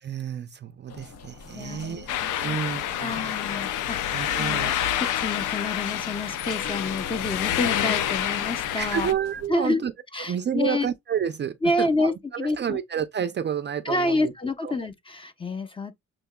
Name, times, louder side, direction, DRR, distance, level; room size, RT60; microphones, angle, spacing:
voice 1, 0.0-3.3 4.1-4.7 8.8-9.9 10.2-14.3 14.6-14.8, right 8 dB, 35° right, 0.5 m, -30 dB
sound 1, 0.9-9.5, left 5 dB, 55° left, 0.9 m, -42 dB
voice 2, 1.5-2.6 3.0-4.7 5.0-9.1 9.5-9.8 10.1-10.9 11.6-12.8 13.8-15.9, left 2 dB, 15° left, 0.7 m, -28 dB
sound 2, 2.1-9.1, left 11 dB, 80° left, 0.6 m, -28 dB
6.8 x 3.0 x 2.2 m
cardioid pair, 90°, 30 cm